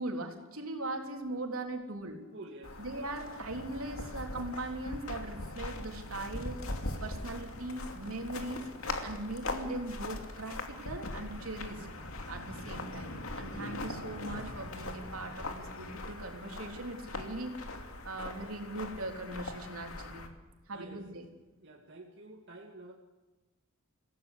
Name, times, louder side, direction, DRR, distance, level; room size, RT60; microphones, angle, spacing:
voice 1, 0.0-2.2 2.8-6.6 7.0-8.7 9.0-11.9 12.3-17.6 18.0-20.3 20.7-21.3, right 2 dB, 75° right, 3 dB, 3.7 m, -40 dB
voice 2, 2.3-2.9 20.7-21.1 21.6-22.9, right 2 dB, 55° right, -1 dB, 2.4 m, -49 dB
sound 1, 2.6-20.3, left 2 dB, 70° left, 2.7 m, -41 dB
27.5 x 16.5 x 8.3 m, 1.2 s
head